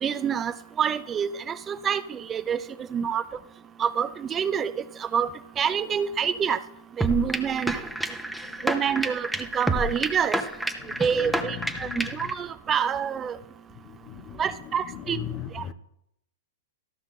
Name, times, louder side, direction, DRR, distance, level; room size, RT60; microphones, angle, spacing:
voice 1, 0.0-3.2 3.8-5.3 5.6-6.6 7.0-7.8 8.6-10.4 11.0-13.4 14.4-15.2 15.5-15.7, right 7 dB, 25° right, 0.4 m, -27 dB
sound 1, 7.0-12.3, right 1 dB, 5° right, 0.8 m, -29 dB
voice 2, 10.8-11.3 11.8-12.1 13.8-14.4 14.9-15.7, left 11 dB, 40° left, 0.7 m, -38 dB
13.5 x 5.8 x 3.7 m
figure-of-eight pair, 105°, 0 cm